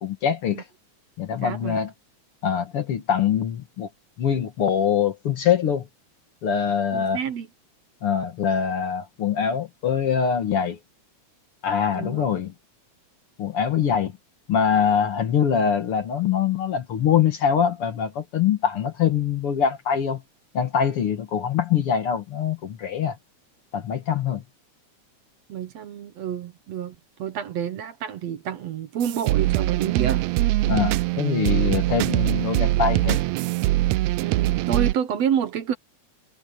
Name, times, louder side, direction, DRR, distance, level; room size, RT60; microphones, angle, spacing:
voice 1, 0.0-0.6 1.2-1.9 2.4-3.9 4.2-5.9 6.4-7.2 8.0-10.8 11.6-12.5 13.4-14.1 14.5-20.2 20.5-23.2 23.7-24.4 30.7-33.2, left 8 dB, 55° left, 2.1 m, -23 dB
voice 2, 1.4-1.8 6.9-7.5 11.9-12.3 25.5-30.3 34.2-35.7, right 9 dB, 65° right, 2.1 m, -28 dB
sound 1, 29.0-34.9, right 17 dB, 80° right, 1.7 m, -22 dB
omnidirectional pair, 3.5 m